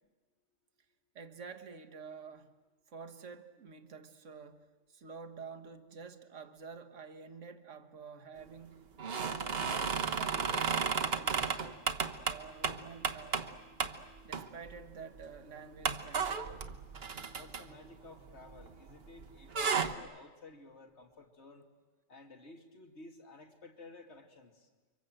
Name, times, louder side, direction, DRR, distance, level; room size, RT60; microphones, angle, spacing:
voice 1, 1.1-2.5 2.9-8.8 9.1-11.8 12.2-13.5 14.2-16.2, right 5 dB, 70° right, 1.6 m, -49 dB
sound 1, 9.0-13.5 13.8-14.0 14.3-14.8 15.2-15.3 15.8-18.9 19.2-19.9, right 5 dB, 55° right, 1.3 m, -33 dB
voice 2, 17.3-21.6 22.1-24.7, left 2 dB, 60° left, 2.7 m, -54 dB
30.0 x 24.5 x 7.8 m
omnidirectional pair, 1.3 m